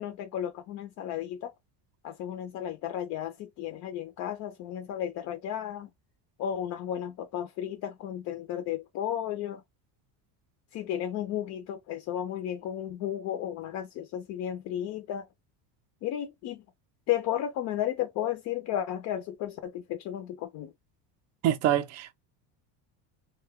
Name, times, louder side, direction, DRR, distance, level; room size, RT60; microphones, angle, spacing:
voice 1, 0.0-1.5 2.0-5.9 6.4-9.6 10.7-15.3 16.0-16.6 17.1-20.7, left 11 dB, 40° left, 0.4 m, -33 dB
voice 2, 21.4-22.1, right 11 dB, 35° right, 0.4 m, -25 dB
2.5 x 2.2 x 3.4 m
cardioid pair, 160°, 46 cm